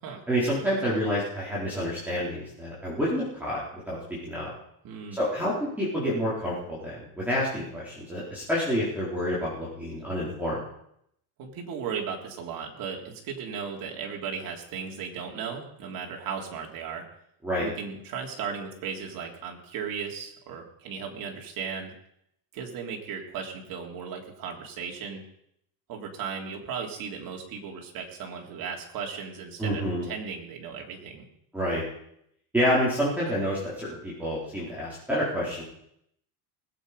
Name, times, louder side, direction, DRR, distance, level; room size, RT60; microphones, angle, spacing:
voice 1, 0.3-4.0 4.2-4.5 5.1-10.6 17.4-17.7 29.6-30.0 31.5-31.8 32.5-35.6, equal, 5° right, -8 dB, 4.6 m, -28 dB
voice 2, 4.8-5.2 11.4-17.0 17.6-21.9 22.5-25.2 25.9-31.3, right 6 dB, 50° right, 0 dB, 3.5 m, -36 dB
20.0 x 8.5 x 5.3 m, 0.74 s
cardioid pair, 130°, 44 cm